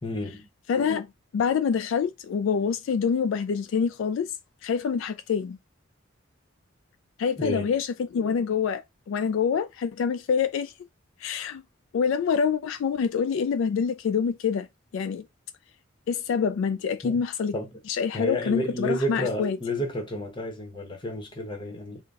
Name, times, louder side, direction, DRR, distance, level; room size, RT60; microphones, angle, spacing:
voice 1, 0.0-0.5 7.4-7.7 17.0-17.2 17.5-17.7 18.1-22.0, left 1 dB, 25° left, 0.9 m, -31 dB
voice 2, 0.7-1.1 1.3-4.3 4.6-5.6 7.2-8.8 9.1-10.7 11.2-11.6 11.9-14.7 14.9-15.2 16.1-17.5 18.0-19.6, left 6 dB, 70° left, 0.3 m, -26 dB
3.9 x 2.2 x 3.5 m
head